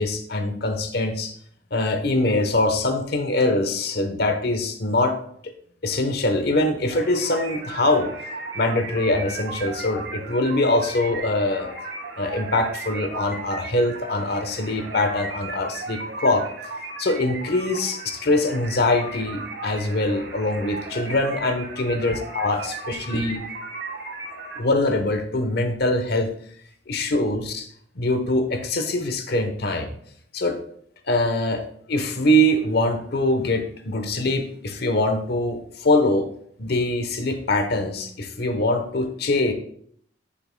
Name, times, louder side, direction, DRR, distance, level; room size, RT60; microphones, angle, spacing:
voice 1, 0.0-1.3 1.7-5.2 5.4-5.5 5.8-8.1 8.5-11.7 12.2-16.5 17.0-23.4 24.6-26.3 26.9-27.7 28.0-29.9 30.3-30.6 31.1-31.6 31.9-36.3 36.6-39.5, left 1 dB, 65° left, 7 dB, 1.0 m, -23 dB
sound 1, 6.9-24.6, right 3 dB, 80° right, 1.8 m, -36 dB
10.0 x 7.7 x 2.2 m, 0.64 s
head